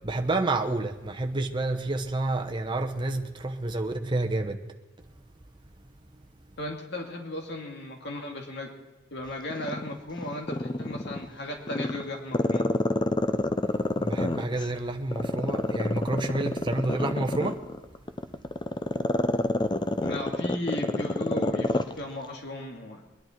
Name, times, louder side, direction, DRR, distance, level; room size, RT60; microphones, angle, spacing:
voice 1, 0.0-4.6 14.0-17.6, right 2 dB, 25° right, 0.9 m, -29 dB
voice 2, 6.6-8.7 9.1-12.7 20.0-23.0, left 1 dB, 55° left, 2.5 m, -36 dB
Growling, 9.5-11.2 11.7-14.7 15.1-21.9 22.2-22.3, left 1 dB, 20° left, 0.6 m, -27 dB
22.5 x 10.5 x 4.5 m
head